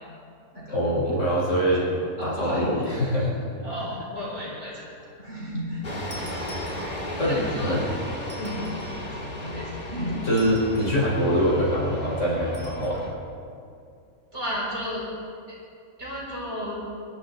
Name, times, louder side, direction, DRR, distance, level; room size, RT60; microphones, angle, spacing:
voice 1, 0.7-1.9 2.2-3.3 7.2-7.8 10.2-13.1, equal, 55° left, -5 dB, 3.8 m, -24 dB
voice 2, 2.2-2.9 3.6-4.9 5.2-5.8 7.2-7.8 8.3-8.7 9.1-10.2 14.3-15.1 16.0-16.8, equal, 50° right, -6 dB, 4.3 m, -33 dB
sound 1, 5.8-13.1, left 1 dB, 30° left, 2.0 m, -35 dB
sound 2, 6.1-7.3 8.2-9.1 10.3-11.0 12.5-13.0, equal, 5° left, 3.2 m, -47 dB
23.0 x 12.5 x 3.9 m, 2.4 s
omnidirectional pair, 1.5 m